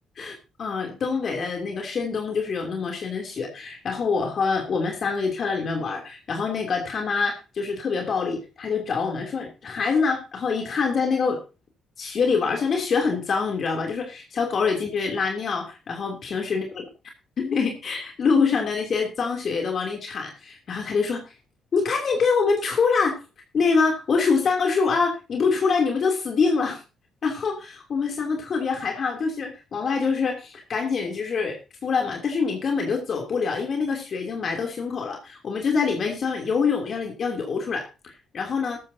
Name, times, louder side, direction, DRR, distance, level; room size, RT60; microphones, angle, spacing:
voice 1, 0.2-11.4 12.0-16.8 17.4-21.2 21.7-23.2 23.5-26.8 27.2-38.8, left 5 dB, 50° left, 2 dB, 3.1 m, -25 dB
14.0 x 13.5 x 2.8 m, 0.29 s
cardioid pair, 90°, 0 cm